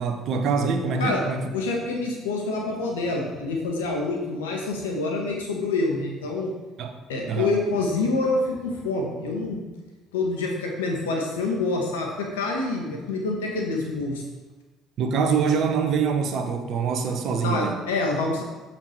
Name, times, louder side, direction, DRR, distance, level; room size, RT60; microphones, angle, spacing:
voice 1, 0.0-1.5 6.8-7.0 7.3-7.6 15.0-17.8, right 5 dB, 60° right, 6 dB, 1.0 m, -24 dB
voice 2, 1.5-6.5 7.1-9.6 10.1-14.2 17.4-18.4, left 3 dB, 90° left, 0 dB, 1.3 m, -26 dB
7.6 x 5.8 x 4.6 m, 1.2 s
hypercardioid pair, 60°, 0 cm